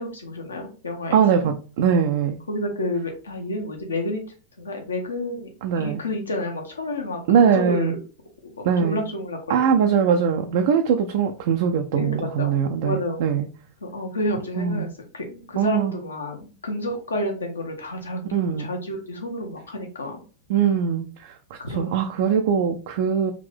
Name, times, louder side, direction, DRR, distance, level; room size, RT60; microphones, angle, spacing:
voice 1, 0.0-1.5 2.5-4.2 4.6-5.5 5.7-8.0 8.4-9.8 11.9-12.6 12.8-13.2 13.8-20.2 21.6-22.1, left 1 dB, 75° left, 1.0 m, -30 dB
voice 2, 1.1-2.4 5.6-6.0 7.3-8.0 8.6-9.0 9.5-13.5 14.6-14.9 15.6-15.9 18.3-18.7 20.5-23.3, right 7 dB, 55° right, 0.4 m, -21 dB
3.6 x 2.6 x 3.4 m
figure-of-eight pair, 90°, 0 cm